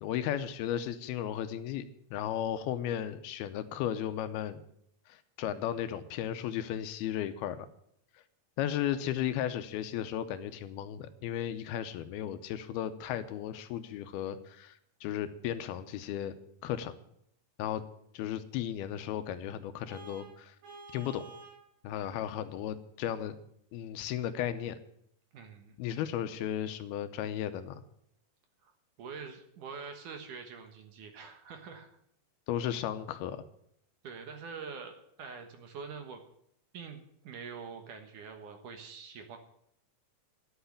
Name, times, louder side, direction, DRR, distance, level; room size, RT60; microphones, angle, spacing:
voice 1, 0.0-4.6 5.1-7.7 8.6-16.4 16.6-16.9 17.6-17.8 18.1-20.6 20.9-21.2 21.8-23.4 23.7-24.8 25.8-27.8 32.5-33.4, left 10 dB, 85° left, 11 dB, 2.6 m, -35 dB
Vehicle horn car horn honking, 19.9-21.7, right 3 dB, 80° right, 7.5 m, -49 dB
voice 2, 25.3-25.8 28.6-28.7 29.0-31.9 34.0-36.2 36.7-39.4, right 5 dB, 60° right, 6 dB, 2.5 m, -45 dB
11.5 x 8.1 x 9.9 m, 0.72 s
omnidirectional pair, 4.6 m